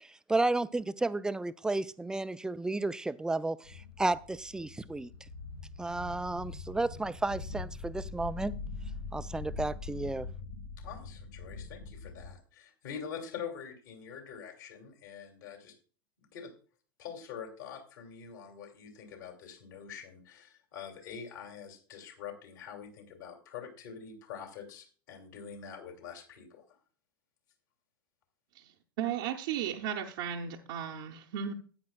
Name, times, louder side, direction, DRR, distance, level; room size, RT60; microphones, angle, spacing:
voice 1, 0.0-5.1 5.8-8.5 9.1-10.3, right 2 dB, 5° right, 15 dB, 0.4 m, -32 dB
sound 1, 3.6-12.3, left 4 dB, 80° left, 2.9 m, -43 dB
voice 2, 10.8-15.7 16.2-16.5 17.0-26.7, left 7 dB, 60° left, 3 dB, 2.6 m, -45 dB
voice 3, 28.5-31.5, right 9 dB, 55° right, 0 dB, 0.8 m, -35 dB
13.0 x 9.3 x 2.3 m, 0.40 s
figure-of-eight pair, 85°, 12 cm